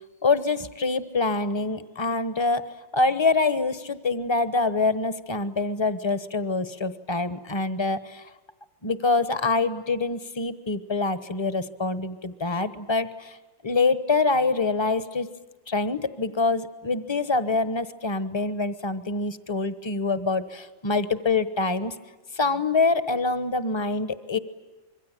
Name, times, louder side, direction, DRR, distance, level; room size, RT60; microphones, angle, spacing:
voice 1, 0.2-2.6 2.9-8.2 8.8-13.4 13.6-15.3 15.7-21.9 22.3-24.4, left 3 dB, 20° left, 13 dB, 0.9 m, -25 dB
26.0 x 23.5 x 9.0 m, 1.2 s
omnidirectional pair, 2.0 m